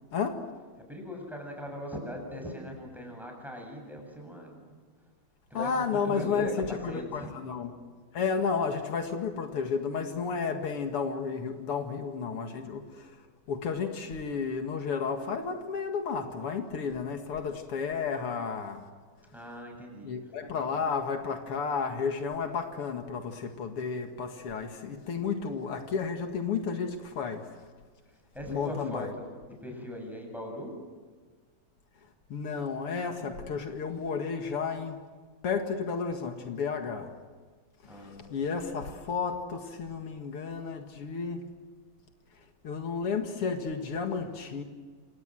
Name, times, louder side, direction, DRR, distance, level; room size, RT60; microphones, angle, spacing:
voice 1, 0.1-0.4 5.5-7.7 8.1-13.2 13.5-18.9 20.0-27.6 28.4-29.1 32.3-35.0 35.4-37.1 37.8-41.5 42.6-44.6, left 5 dB, 85° left, 5 dB, 2.9 m, -32 dB
voice 2, 0.9-4.8 5.5-6.5 6.9-7.3 19.3-20.1 28.1-29.3 29.6-30.7 37.8-38.3, equal, ahead, 1 dB, 7.9 m, -40 dB
28.0 x 27.5 x 7.8 m, 1.4 s
omnidirectional pair, 2.4 m